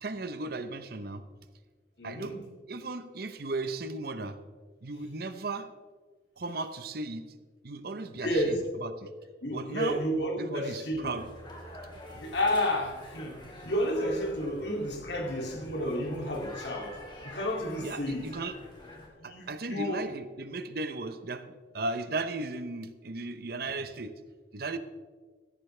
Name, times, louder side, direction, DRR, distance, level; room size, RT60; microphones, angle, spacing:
voice 1, 0.0-1.2 2.0-2.4 2.7-4.4 4.8-5.7 6.4-7.3 7.6-9.1 9.5-10.0 10.4-11.3 12.1-12.3 13.6-13.7 17.8-18.6 19.2-21.5 21.7-24.1 24.5-24.8, right 3 dB, 55° right, 11 dB, 0.8 m, -36 dB
voice 2, 2.0-2.4 8.2-8.6 9.4-11.1 12.1-17.0 17.2-18.3 19.2-20.0, equal, 70° left, 0 dB, 2.6 m, -31 dB
sound 1, 11.1-19.1, left 1 dB, 25° left, 2.4 m, -46 dB
15.0 x 13.5 x 3.3 m, 1.5 s
head